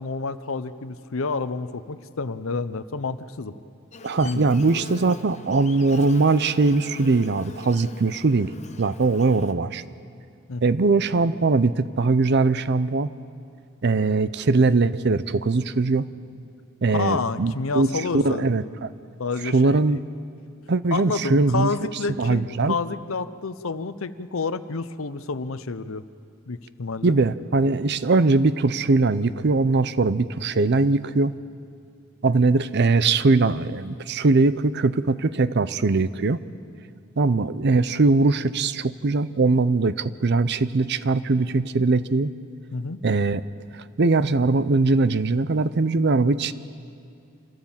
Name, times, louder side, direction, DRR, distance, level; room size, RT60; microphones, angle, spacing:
voice 1, 0.0-3.6 4.2-4.8 10.5-10.6 16.9-18.8 19.2-19.8 20.9-22.4 22.7-26.1 26.5-27.2 42.7-43.0, left 4 dB, 70° left, 13 dB, 0.7 m, -29 dB
Buzz, 3.9-9.5, left 3 dB, 35° left, 0.8 m, -43 dB
voice 2, 4.0-8.5 8.8-9.8 10.6-13.1 13.8-16.1 16.8-18.9 19.4-20.0 20.7-21.7 22.2-22.7 27.0-31.3 32.2-36.4 37.2-42.3 43.0-43.4 43.7-46.5, right 3 dB, 55° right, 15 dB, 0.6 m, -21 dB
27.0 x 14.5 x 7.4 m, 2.4 s
head